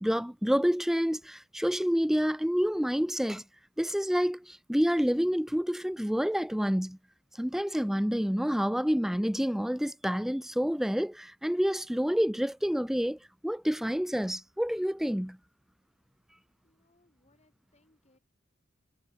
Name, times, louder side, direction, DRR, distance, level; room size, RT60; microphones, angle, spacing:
voice 1, 0.0-3.4 3.8-7.0 7.4-13.2 13.4-15.4, equal, ahead, 0.5 m, -28 dB
voice 2, 16.6-18.2, left 2 dB, 35° left, 6.1 m, -68 dB
head